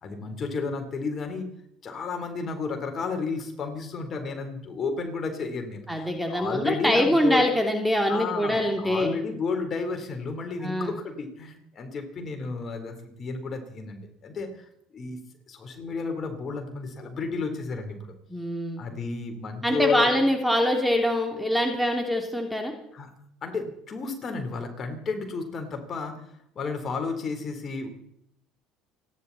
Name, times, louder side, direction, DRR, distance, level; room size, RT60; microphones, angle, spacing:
voice 1, 0.0-1.4 1.8-7.4 8.1-14.5 14.9-15.2 15.5-18.1 18.8-20.1 22.9-23.1 23.4-26.1 26.6-27.9, left 4 dB, 40° left, 4 dB, 3.8 m, -32 dB
voice 2, 5.9-9.1 10.6-11.0 18.3-18.8 19.6-22.7, equal, ahead, 2 dB, 2.9 m, -24 dB
29.5 x 10.5 x 4.2 m, 0.75 s
supercardioid pair, 85°, 0 cm